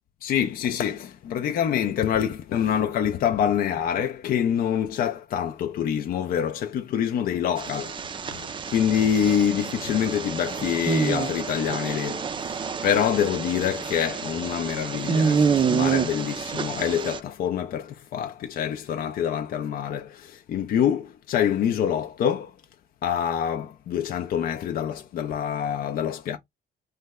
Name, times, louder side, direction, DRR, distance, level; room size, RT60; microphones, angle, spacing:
voice 1, 0.2-8.0 8.2-22.5 23.0-26.4, left 9 dB, 55° left, 0.4 m, -26 dB
sound 1, 7.6-17.2, right 6 dB, 30° right, 0.4 m, -28 dB
3.2 x 2.1 x 3.4 m
cardioid pair, 120°, 18 cm